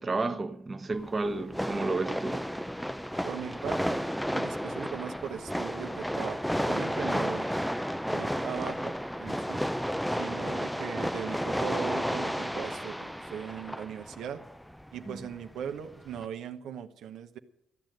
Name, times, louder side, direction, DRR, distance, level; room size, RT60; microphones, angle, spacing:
voice 1, 0.0-2.5 15.0-15.3, right 3 dB, 25° right, 1.0 m, -32 dB
sound 1, 0.9-16.3, equal, ahead, 0.4 m, -32 dB
voice 2, 3.2-7.5 8.1-9.6 10.1-14.4 14.9-17.4, right 8 dB, 80° right, 0.9 m, -39 dB
14.5 x 9.0 x 7.9 m
cardioid pair, 90°, 0 cm